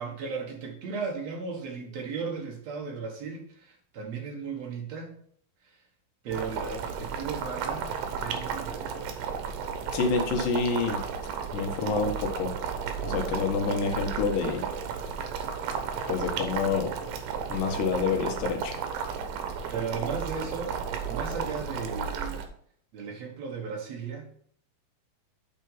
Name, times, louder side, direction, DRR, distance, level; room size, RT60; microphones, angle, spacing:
voice 1, 0.0-5.2 5.6-5.8 6.2-9.3 13.1-13.5 19.7-22.4 22.9-24.3, right 5 dB, 60° right, 1 dB, 2.3 m, -36 dB
Boiling, 6.3-22.5, right 6 dB, 85° right, 2.6 m, -33 dB
voice 2, 9.9-11.0 11.5-12.6 13.0-14.7 16.1-16.9 17.5-18.8, left 4 dB, 80° left, 3 dB, 2.7 m, -28 dB
7.6 x 4.4 x 5.6 m, 0.62 s
omnidirectional pair, 3.8 m